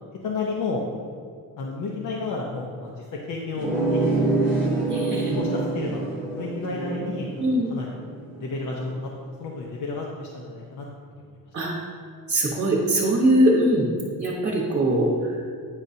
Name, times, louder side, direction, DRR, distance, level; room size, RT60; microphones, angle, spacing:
voice 1, 0.2-0.8 1.6-4.9 5.3-7.9 8.4-9.1 9.4-10.9 11.3-11.5, left 3 dB, 60° left, -2 dB, 0.7 m, -32 dB
sound 1, 3.5-8.8, right 2 dB, 5° right, 1.2 m, -26 dB
voice 2, 4.9-5.4 7.4-7.8 11.5-11.7 12.3-13.9 14.2-15.3, right 1 dB, 35° right, -4 dB, 1.1 m, -21 dB
8.9 x 5.4 x 2.7 m, 2.1 s
cardioid pair, 170°, 36 cm